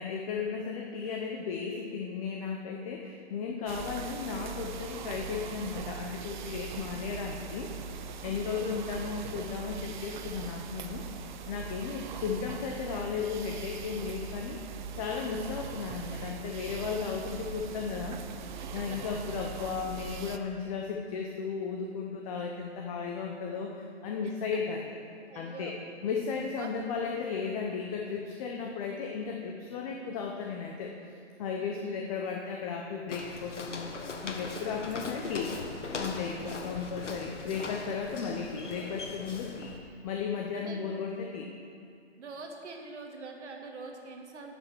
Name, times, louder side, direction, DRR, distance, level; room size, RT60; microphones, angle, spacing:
voice 1, 0.0-7.7 8.2-11.0 11.4-18.2 18.7-24.9 25.3-25.8 26.0-30.9 31.4-33.9 34.2-35.6 35.9-39.7 40.0-41.5, left 5 dB, 30° left, 1 dB, 0.8 m, -35 dB
sound 1, 3.7-20.4, right 6 dB, 40° right, 0.6 m, -41 dB
voice 2, 25.3-25.8 26.6-26.7 28.6-28.7 31.8-32.0 34.5-34.8 40.5-40.8 42.2-44.6, right 4 dB, 75° right, 2 dB, 1.9 m, -45 dB
Walk footsteps, 33.1-39.8, left 3 dB, 90° left, 1.4 m, -40 dB
10.0 x 6.9 x 6.3 m, 2.4 s
hypercardioid pair, 145°, 35 cm